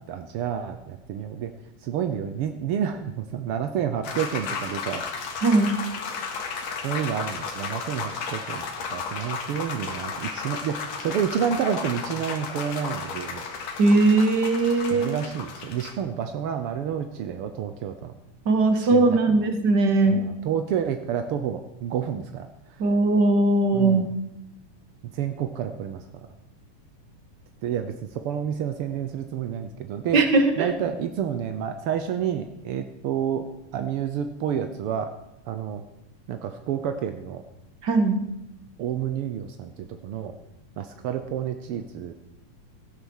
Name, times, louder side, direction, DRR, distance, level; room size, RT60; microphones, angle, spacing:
voice 1, 0.1-1.5 1.8-5.0 6.8-8.6 8.9-13.4 14.9-18.1 18.8-19.4 20.0-22.5 23.7-24.0 25.1-26.0 27.6-30.2 30.6-33.5 33.7-35.1 35.5-35.8 36.3-37.4 38.8-40.4 40.8-42.1, right 8 dB, 75° right, 8 dB, 1.3 m, -29 dB
sound 1, 4.0-15.9, left 5 dB, 60° left, 2.9 m, -34 dB
voice 2, 5.4-5.7 13.8-15.1 18.5-20.2 22.8-24.0 30.1-30.7 37.8-38.2, right 2 dB, 40° right, 7 dB, 1.9 m, -19 dB
15.5 x 11.0 x 7.2 m, 0.85 s
omnidirectional pair, 3.7 m